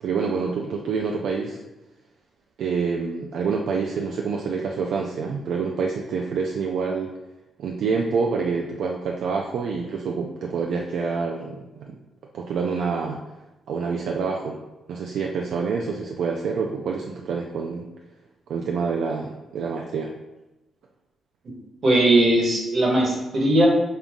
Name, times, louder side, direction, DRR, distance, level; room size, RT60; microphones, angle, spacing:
voice 1, 0.0-1.6 2.6-7.1 7.6-12.0 12.3-13.2 13.7-14.6 14.9-17.9 18.5-20.1, right 5 dB, 80° right, 1 dB, 0.3 m, -27 dB
voice 2, 21.8-23.7, right 1 dB, 55° right, -2 dB, 1.4 m, -19 dB
5.4 x 2.3 x 3.6 m, 1.0 s
cardioid pair, 90°, 0 cm